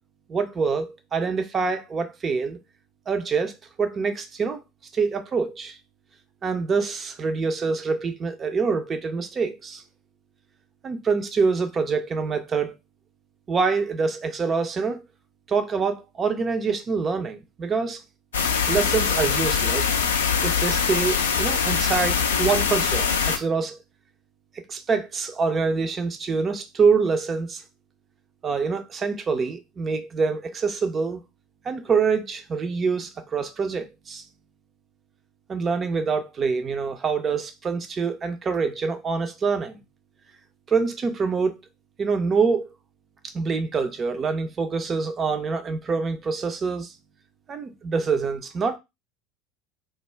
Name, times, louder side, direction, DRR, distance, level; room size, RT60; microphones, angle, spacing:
voice 1, 0.3-2.6 3.1-4.6 4.9-5.8 6.4-9.8 10.8-12.7 13.5-15.0 15.5-18.0 18.7-20.2 20.4-23.8 24.7-27.6 28.4-31.2 31.6-34.2 35.5-39.8 40.7-41.6 42.0-42.7 43.2-47.0 47.5-48.8, right 5 dB, 30° right, 0.4 m, -25 dB
sound 1, 18.3-23.4, left 6 dB, 70° left, 0.4 m, -23 dB
2.3 x 2.0 x 3.1 m
figure-of-eight pair, 70°, 0 cm